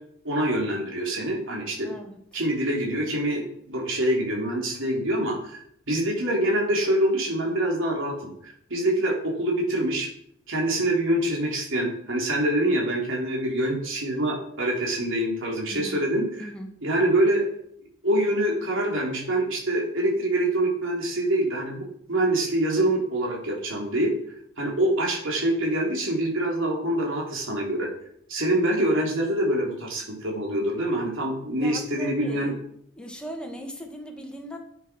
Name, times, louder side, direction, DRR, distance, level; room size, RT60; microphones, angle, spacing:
voice 1, 0.2-1.9 2.3-5.6 5.9-10.1 10.5-16.5 16.8-17.4 18.0-24.1 24.6-27.9 28.3-32.5, right 1 dB, 65° right, -1 dB, 3.8 m, -25 dB
voice 2, 1.8-2.4 15.7-16.0 16.4-16.9 31.6-32.5 33.0-34.6, equal, 5° left, 2 dB, 1.8 m, -39 dB
9.7 x 8.5 x 6.2 m, 0.68 s
head